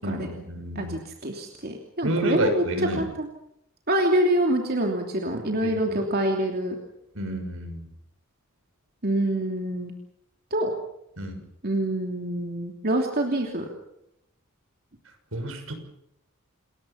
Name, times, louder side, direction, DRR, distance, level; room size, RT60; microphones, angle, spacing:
voice 1, 0.0-1.0 2.0-3.1 5.3-6.0 7.1-7.9 11.2-11.4 15.3-15.7, right 1 dB, 70° right, 7 dB, 6.2 m, -30 dB
voice 2, 0.7-2.6 3.0-3.3 3.9-6.8 9.0-9.9 10.5-10.7 11.6-13.7, right 1 dB, 45° right, 2 dB, 3.0 m, -26 dB
28.5 x 21.5 x 5.8 m, 0.80 s
head